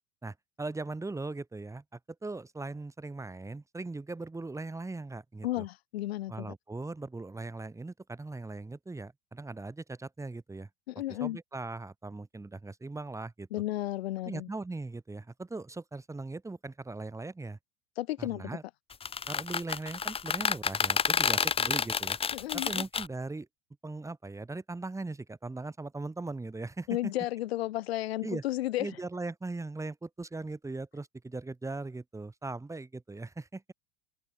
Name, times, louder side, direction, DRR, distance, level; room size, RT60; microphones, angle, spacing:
voice 1, 0.2-5.6 6.3-10.7 11.2-13.5 14.3-17.6 18.2-18.6 19.3-22.2 22.5-23.5 23.8-27.1 28.2-28.4 28.8-33.7, right 3 dB, 10° right, 5.3 m, -39 dB
voice 2, 5.4-6.5 10.9-11.4 13.5-14.5 18.0-18.5 22.3-22.8 26.9-28.9, left 15 dB, 85° left, 4.4 m, -33 dB
sound 1, 18.9-23.1, left 6 dB, 20° left, 1.4 m, -29 dB
supercardioid pair, 120°, 30 cm